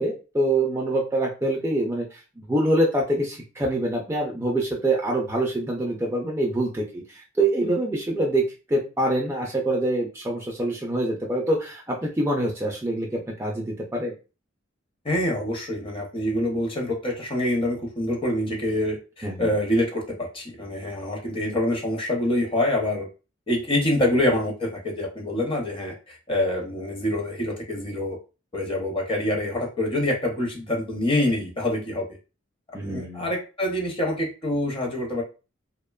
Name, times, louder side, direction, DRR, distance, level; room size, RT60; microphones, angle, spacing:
voice 1, 0.0-2.2 2.5-14.1 19.2-19.5 32.7-33.3, right 1 dB, 10° right, -1 dB, 0.3 m, -25 dB
voice 2, 15.0-23.1 23.5-28.2 28.5-32.1 32.8-35.2, left 1 dB, 25° left, 0 dB, 0.6 m, -26 dB
2.8 x 2.1 x 2.2 m, 0.33 s
head